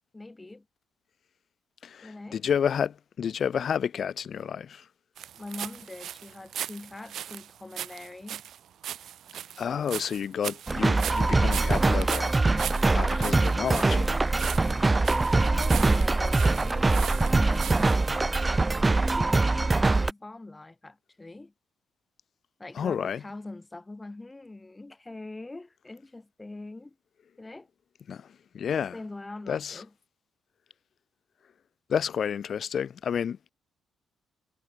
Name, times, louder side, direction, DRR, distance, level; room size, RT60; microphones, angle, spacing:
voice 1, 0.1-0.6 2.0-2.4 5.3-8.4 14.7-18.0 19.0-21.5 22.6-27.0 27.4-27.7 28.9-29.9, left 2 dB, 15° left, 8.0 m, -43 dB
voice 2, 1.8-4.8 9.6-14.2 22.7-23.2 28.1-28.3 28.5-29.0 29.5-29.8 31.9-33.4, left 8 dB, 55° left, 2.7 m, -30 dB
sound 1, 5.2-18.1, right 10 dB, 70° right, 3.0 m, -39 dB
sound 2, 10.7-20.1, right 3 dB, 20° right, 0.7 m, -23 dB
cardioid pair, 90°, 0 cm